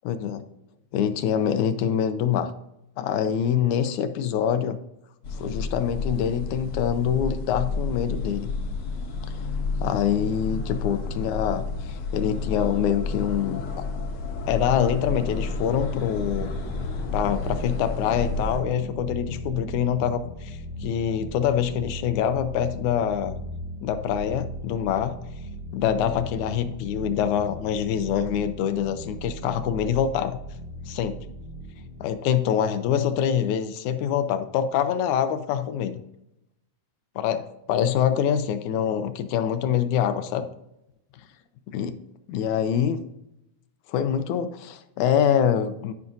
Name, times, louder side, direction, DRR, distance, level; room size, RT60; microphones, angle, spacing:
voice 1, 0.0-0.5 0.9-2.5 3.0-4.8 5.3-8.5 9.8-13.6 14.5-16.5 17.1-23.4 23.8-25.1 25.7-30.4 30.9-31.2 32.0-36.0 37.2-37.4 37.7-40.5 41.7-42.0 42.3-43.0 43.9-45.9, left 9 dB, 85° left, 10 dB, 2.1 m, -25 dB
sound 1, 5.2-18.6, left 4 dB, 60° left, 1.6 m, -31 dB
sound 2, 14.3-32.1, right 1 dB, 45° right, 0.7 m, -37 dB
12.0 x 5.5 x 2.6 m, 0.85 s
omnidirectional pair, 3.4 m